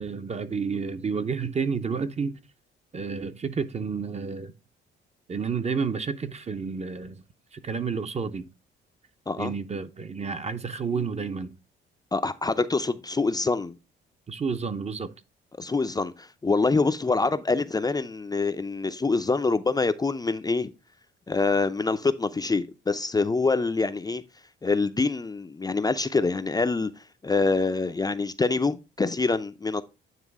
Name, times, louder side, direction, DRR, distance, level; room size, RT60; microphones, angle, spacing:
voice 1, 0.0-2.4 2.9-4.5 5.3-7.2 7.5-8.5 9.4-11.5 14.3-15.1, right 5 dB, 35° right, 0.8 m, -30 dB
voice 2, 12.1-13.8 15.6-20.7 21.3-24.2 24.6-29.8, left 3 dB, 20° left, 0.5 m, -25 dB
9.2 x 3.1 x 4.8 m
cardioid pair, 90°, 20 cm